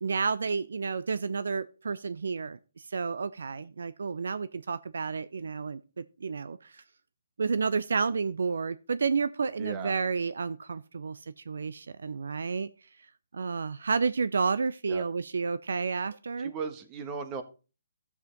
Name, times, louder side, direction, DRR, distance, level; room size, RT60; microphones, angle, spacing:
voice 1, 0.0-2.6 2.9-6.8 7.4-11.2 11.5-12.7 13.3-16.5, right 5 dB, 75° right, 0.5 m, -30 dB
voice 2, 9.6-9.9 14.8-15.0 16.4-17.4, right 5 dB, 25° right, 1.2 m, -37 dB
13.0 x 7.2 x 3.8 m
hypercardioid pair, 145°, 0 cm